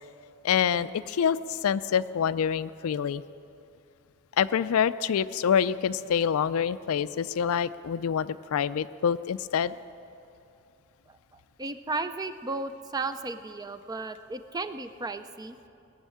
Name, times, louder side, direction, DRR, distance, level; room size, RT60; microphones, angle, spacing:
voice 1, 0.4-3.2 4.4-9.7, left 7 dB, 80° left, 15 dB, 0.4 m, -26 dB
voice 2, 11.6-15.6, right 3 dB, 20° right, 11 dB, 0.4 m, -34 dB
18.5 x 6.4 x 8.4 m, 2.7 s
head